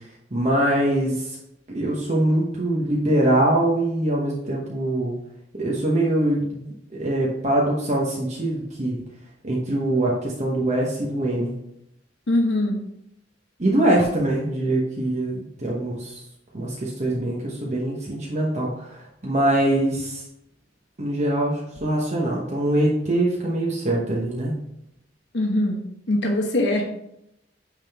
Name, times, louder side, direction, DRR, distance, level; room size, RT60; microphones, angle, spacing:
voice 1, 0.3-1.3 1.7-5.1 5.6-6.6 7.0-9.0 9.4-11.5 13.6-16.2 16.5-20.2 21.0-24.5, right 1 dB, 40° right, -3 dB, 1.0 m, -23 dB
voice 2, 12.3-12.8 25.3-25.8 26.1-26.8, left 1 dB, 70° left, 0 dB, 1.1 m, -22 dB
9.0 x 3.8 x 3.5 m, 0.79 s
head